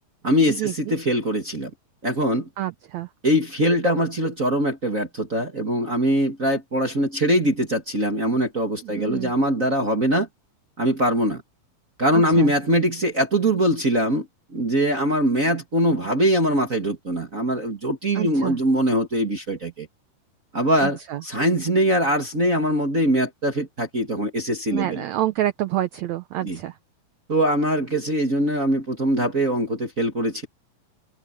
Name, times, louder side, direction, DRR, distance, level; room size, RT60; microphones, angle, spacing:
voice 1, 0.2-1.7 2.0-2.5 3.2-10.3 10.8-11.4 12.0-14.3 14.5-19.9 20.5-25.0 26.4-26.6 27.3-30.5, equal, 30° right, 1.7 m, -22 dB
voice 2, 2.6-3.1 8.8-9.3 12.1-12.5 18.1-18.6 20.8-21.2 24.7-26.7, right 13 dB, 80° right, 1.6 m, -27 dB
open air
omnidirectional pair, 4.3 m